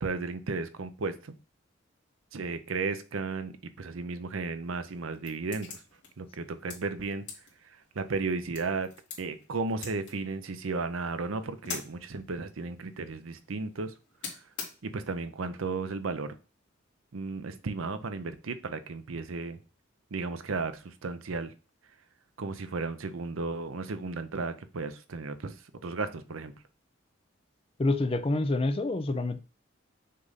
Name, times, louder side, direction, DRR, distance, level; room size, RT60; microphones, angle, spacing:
voice 1, 0.0-1.3 2.3-5.8 6.2-7.2 7.6-8.9 9.2-13.9 14.8-16.3 17.1-19.6 20.1-21.5 22.4-25.5 25.8-26.5, right 4 dB, 85° right, 0.6 m, -34 dB
sound 1, 4.6-15.2, left 5 dB, 55° left, 2.3 m, -47 dB
voice 2, 27.8-29.4, left 2 dB, 30° left, 0.4 m, -27 dB
6.5 x 2.6 x 5.6 m
head